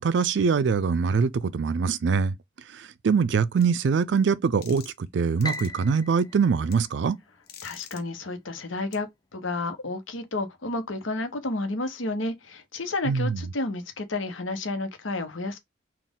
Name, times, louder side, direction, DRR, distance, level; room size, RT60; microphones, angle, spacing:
voice 1, 0.0-2.4 2.7-7.2 13.1-13.4, right 5 dB, 65° right, 0.4 m, -23 dB
sound 1, 3.6-3.7 4.6-5.1 5.4-5.7 6.7-6.8 7.5-8.0 8.9-9.0, left 9 dB, 50° left, 0.8 m, -45 dB
Piano, 5.4-7.7, left 1 dB, 20° left, 0.5 m, -38 dB
voice 2, 7.6-15.6, left 2 dB, 85° left, 1.0 m, -31 dB
4.1 x 2.4 x 3.7 m
head